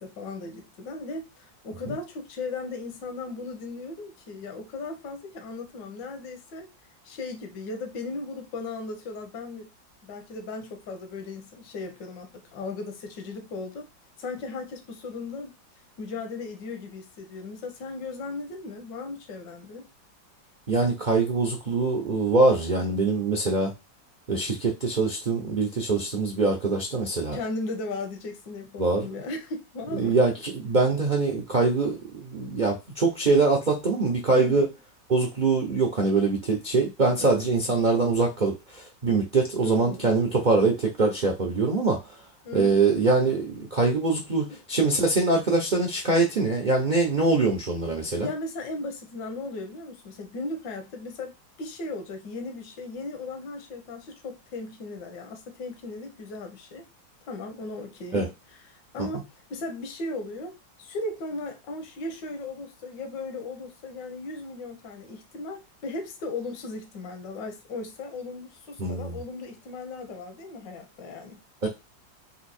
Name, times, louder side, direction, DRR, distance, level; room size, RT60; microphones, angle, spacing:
voice 1, 0.0-6.7 7.0-9.7 10.0-13.9 14.2-15.5 16.0-19.9 27.3-30.2 34.4-34.7 37.2-37.5 39.6-40.2 42.4-42.8 44.5-44.6 48.2-56.9 57.3-60.5 60.8-71.4, left 3 dB, 70° left, 1.5 m, -37 dB
voice 2, 20.7-23.7 24.3-27.4 28.8-29.1 29.9-34.7 35.1-42.0 42.5-48.3 58.1-58.3 59.0-59.1 68.8-69.2 71.6-71.7, right 3 dB, 90° right, 0.4 m, -23 dB
4.3 x 2.6 x 4.2 m
omnidirectional pair, 2.0 m